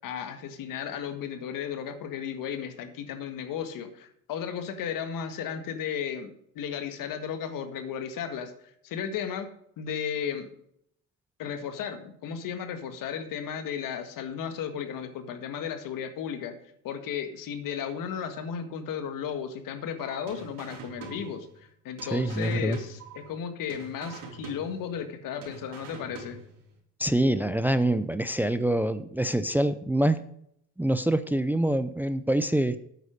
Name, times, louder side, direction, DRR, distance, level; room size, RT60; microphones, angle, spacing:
voice 1, 0.0-9.5 9.8-10.5 11.4-16.5 16.8-26.4, left 8 dB, 70° left, 8 dB, 1.7 m, -34 dB
sound 1, 20.0-20.7 21.0-21.7 22.0-22.7 23.0-23.7 24.0-24.7, right 11 dB, 50° right, 3.5 m, -50 dB
sound 2, 20.3-21.7 22.0-23.4 23.7-25.1 25.4-26.7, right 4 dB, 80° right, 3.7 m, -45 dB
voice 2, 22.1-22.8 27.0-30.2 30.8-32.8, right 1 dB, 5° right, 12 dB, 0.5 m, -25 dB
9.6 x 8.3 x 5.2 m, 0.70 s
cardioid pair, 110°, 34 cm